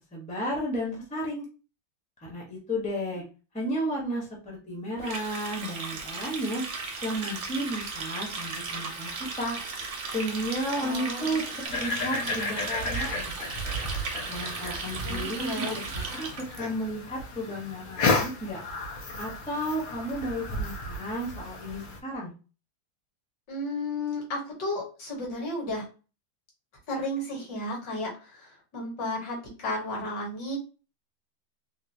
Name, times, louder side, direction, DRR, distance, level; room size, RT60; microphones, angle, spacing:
voice 1, 0.1-1.4 2.2-3.2 3.5-6.6 7.0-9.1 9.4-9.6 10.1-13.5 14.3-15.8 16.2-18.6 19.2-22.3, equal, 10° left, -2 dB, 0.4 m, -33 dB
Water tap faucet, 5.0-16.6, right 4 dB, 65° right, 0.7 m, -36 dB
voice 2, 10.7-11.4 11.7-12.6 15.0-15.8 23.5-25.8 26.9-30.6, left 1 dB, 65° left, -1 dB, 1.9 m, -34 dB
sound 1, 11.6-22.0, left 2 dB, 85° left, 1.5 m, -33 dB
3.8 x 2.3 x 2.7 m, 0.34 s
omnidirectional pair, 2.0 m